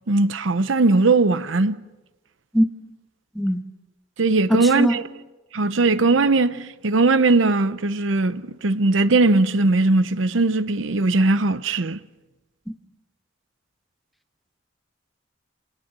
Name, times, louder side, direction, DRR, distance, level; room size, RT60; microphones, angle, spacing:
voice 1, 0.1-1.8 4.2-5.0 5.5-12.0, right 3 dB, 85° right, 0.8 m, -19 dB
voice 2, 4.5-5.0 12.7-12.8, equal, ahead, 1.3 m, -20 dB
30.0 x 19.0 x 6.1 m
head